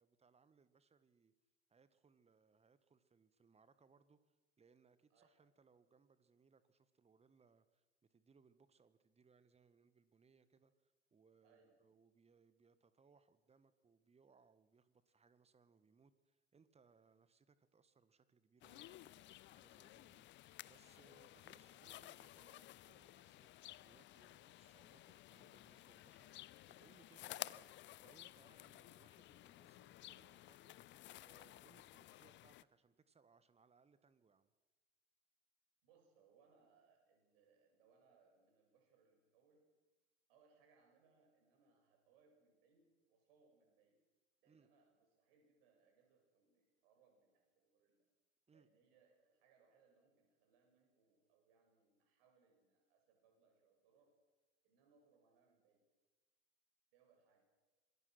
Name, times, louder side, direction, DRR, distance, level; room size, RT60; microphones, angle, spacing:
voice 1, 0.0-1.3 1.7-7.8 8.1-34.5 44.4-44.7 48.5-48.7, right 5 dB, 20° right, 14 dB, 1.7 m, -71 dB
voice 2, 11.4-11.7 35.8-39.7 40.3-44.0 44.4-48.1 48.5-54.1 54.6-55.9 56.9-57.4, right 5 dB, 55° right, 3 dB, 7.2 m, -74 dB
sound 1, 18.6-32.6, left 15 dB, 35° left, 0.7 m, -55 dB
26.5 x 21.0 x 6.3 m, 1.2 s
figure-of-eight pair, 70°, 33 cm